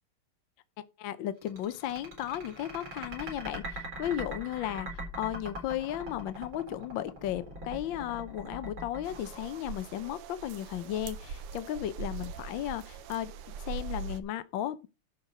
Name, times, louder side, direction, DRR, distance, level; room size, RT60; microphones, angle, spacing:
voice 1, 1.0-13.3 13.6-14.9, left 12 dB, 70° left, 1.4 m, -35 dB
sound 1, 1.4-10.1, right 1 dB, 65° right, 5.1 m, -41 dB
sound 2, 9.0-14.2, right 5 dB, 90° right, 1.8 m, -41 dB
11.5 x 4.6 x 6.5 m
omnidirectional pair, 2.4 m